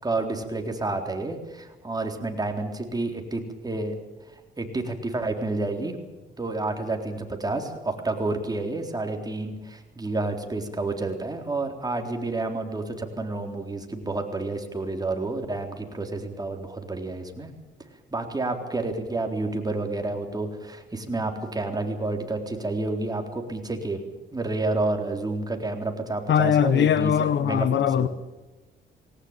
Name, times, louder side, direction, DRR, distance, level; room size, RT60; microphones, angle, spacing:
voice 1, 0.0-4.0 4.3-6.0 6.4-17.5 18.1-24.0 24.3-27.7 28.0-28.1, right 2 dB, 20° right, 3.9 m, -29 dB
voice 2, 26.3-28.1, left 9 dB, 65° left, 1.1 m, -21 dB
20.0 x 18.0 x 9.0 m
cardioid pair, 90°, 20 cm